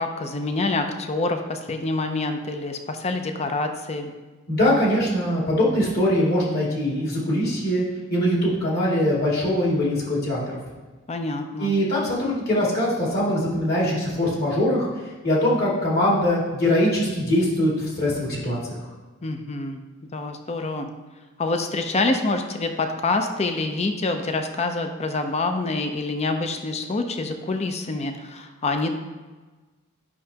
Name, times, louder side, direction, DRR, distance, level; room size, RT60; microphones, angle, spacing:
voice 1, 0.0-4.1 11.1-11.8 19.2-19.8 20.1-20.9 21.4-28.9, left 3 dB, 30° left, 6 dB, 0.5 m, -26 dB
voice 2, 4.5-7.8 8.1-10.6 11.6-14.9 15.2-18.6, left 1 dB, 50° left, -6 dB, 2.3 m, -22 dB
9.7 x 5.6 x 2.8 m, 1.3 s
head